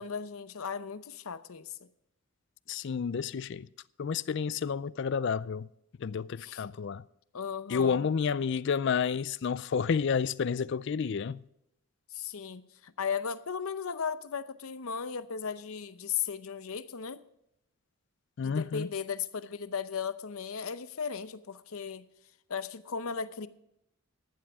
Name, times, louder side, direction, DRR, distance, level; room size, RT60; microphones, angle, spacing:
voice 1, 0.0-1.8 6.4-6.6 7.3-8.0 12.1-17.2 18.4-22.1 22.5-23.5, left 6 dB, 80° left, 0.7 m, -36 dB
voice 2, 2.7-3.7 4.0-5.7 6.0-7.0 7.7-11.4 18.4-18.9, left 6 dB, 55° left, 0.4 m, -30 dB
14.0 x 12.5 x 3.5 m
head